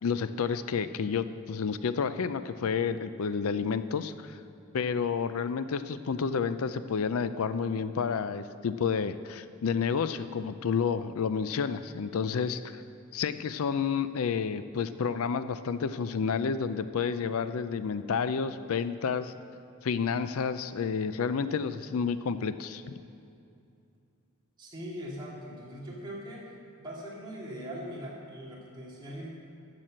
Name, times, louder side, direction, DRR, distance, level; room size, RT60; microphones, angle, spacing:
voice 1, 0.0-4.4 4.7-12.8 13.1-19.3 19.8-22.8, left 6 dB, 70° left, 12 dB, 0.4 m, -30 dB
voice 2, 24.6-26.5 26.8-29.3, equal, 20° right, -5 dB, 2.5 m, -41 dB
14.0 x 6.1 x 7.5 m, 2.6 s
head